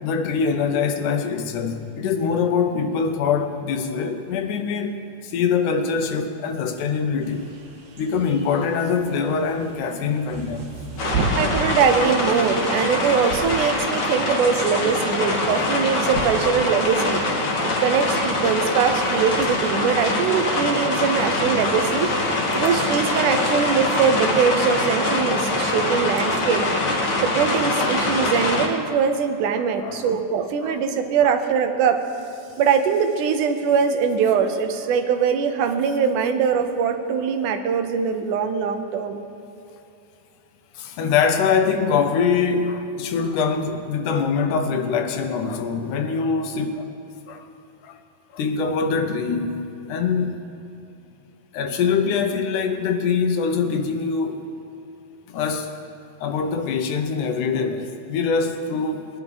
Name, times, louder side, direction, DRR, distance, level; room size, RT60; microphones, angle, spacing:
voice 1, 0.0-7.5 8.0-10.7 29.6-30.1 30.6-30.8 31.2-31.3 40.8-46.9 47.3-47.5 47.8-48.0 48.3-50.5 51.5-54.5 55.3-55.7 56.2-59.1, left 5 dB, 80° left, 6 dB, 2.4 m, -23 dB
sound 1, 7.2-19.8, right 3 dB, 70° right, 2.6 m, -35 dB
sound 2, 11.0-28.7, left 2 dB, 45° left, 1.7 m, -23 dB
voice 2, 11.4-17.2 17.8-22.2 22.5-26.6 27.2-32.0 32.6-39.2, right 6 dB, 85° right, 7 dB, 2.4 m, -22 dB
21.0 x 10.5 x 4.1 m, 2.8 s
omnidirectional pair, 3.5 m